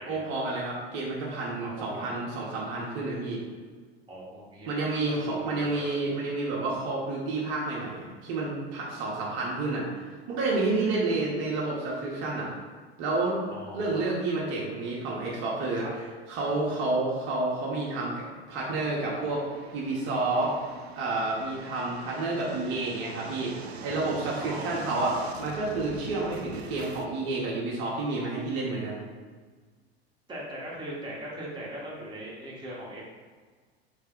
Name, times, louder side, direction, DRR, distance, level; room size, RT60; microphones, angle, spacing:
voice 1, 0.1-3.4 4.7-12.5 13.0-13.4 13.7-15.8 16.3-19.4 19.7-20.6 20.9-23.5 23.8-29.0, right 2 dB, 45° right, -4 dB, 1.0 m, -30 dB
voice 2, 1.6-2.1 4.1-4.7 5.0-5.9 10.8-11.3 13.5-14.1 15.7-15.9 24.4-24.8 26.2-26.3 30.3-33.1, right 1 dB, 15° right, -6 dB, 1.2 m, -40 dB
sound 1, 18.5-27.1, right 5 dB, 80° right, 0.5 m, -44 dB
3.4 x 3.3 x 3.7 m, 1.5 s
figure-of-eight pair, 85°, 32 cm